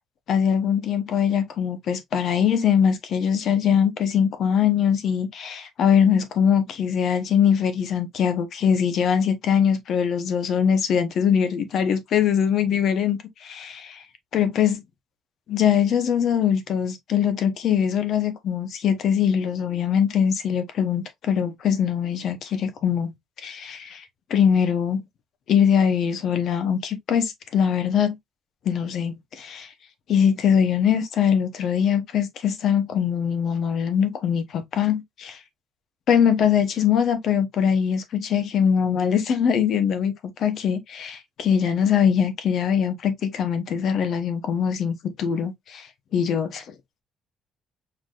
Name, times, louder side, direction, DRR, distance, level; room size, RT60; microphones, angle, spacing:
voice 1, 0.3-14.0 14.3-14.8 15.5-23.1 23.4-24.0 24.3-25.0 25.5-28.2 28.6-29.7 30.1-35.4 36.1-40.1 40.4-45.9 46.1-46.6, left 8 dB, 45° left, 0.8 m, -22 dB
4.7 x 3.8 x 2.4 m
cardioid pair, 180°, 0 cm